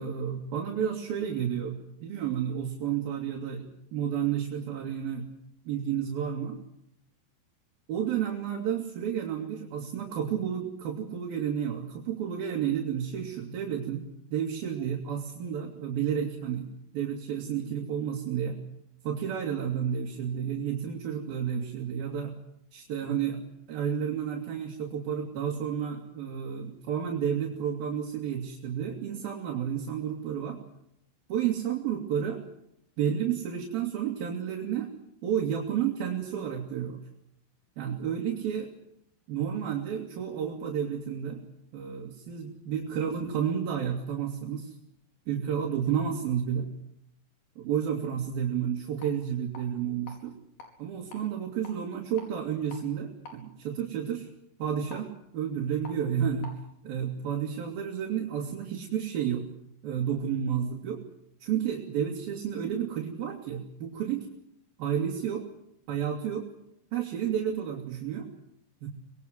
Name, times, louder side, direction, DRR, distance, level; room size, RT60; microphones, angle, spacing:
voice 1, 0.0-3.7 3.9-5.3 5.7-6.6 7.9-14.0 14.3-16.7 16.9-18.6 19.0-22.3 22.7-23.4 23.7-30.6 31.3-32.4 33.0-34.9 35.2-37.0 37.8-38.7 39.3-41.4 41.7-44.7 45.3-46.7 47.6-50.3 50.8-54.3 54.6-56.5 56.8-59.5 59.8-61.0 61.4-64.3 64.8-65.5 65.9-66.5 66.9-68.3 68.8-68.9, right 8 dB, 80° right, 0 dB, 4.3 m, -31 dB
sound 1, 48.8-56.6, left 3 dB, 75° left, 6.5 m, -52 dB
25.5 x 20.5 x 7.9 m, 0.78 s
omnidirectional pair, 4.2 m